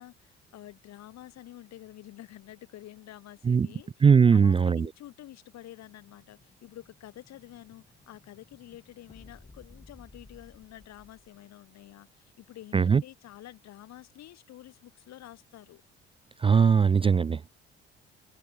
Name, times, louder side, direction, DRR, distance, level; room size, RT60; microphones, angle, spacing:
voice 1, 0.0-4.0 4.3-15.8, left 14 dB, 55° left, 2.1 m, -49 dB
voice 2, 4.0-4.9 12.7-13.0 16.4-17.5, right 6 dB, 15° right, 0.4 m, -20 dB
Explosion, 5.4-11.4, left 3 dB, 15° left, 4.6 m, -56 dB
figure-of-eight pair, 50°, 32 cm